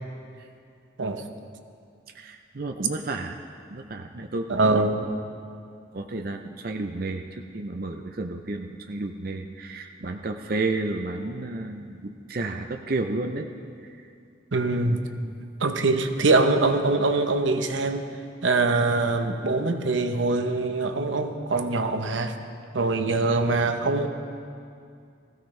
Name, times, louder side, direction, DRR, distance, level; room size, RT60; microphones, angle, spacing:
voice 1, 2.1-3.4 3.7-4.8 5.9-13.5 13.8-14.1 15.2-15.4, right 2 dB, 50° right, 4 dB, 0.6 m, -32 dB
voice 2, 4.5-5.0 14.5-15.0 15.6-18.1 18.4-22.4 22.7-24.1, right 3 dB, 85° right, 7 dB, 0.9 m, -23 dB
20.0 x 15.5 x 3.3 m, 2.4 s
head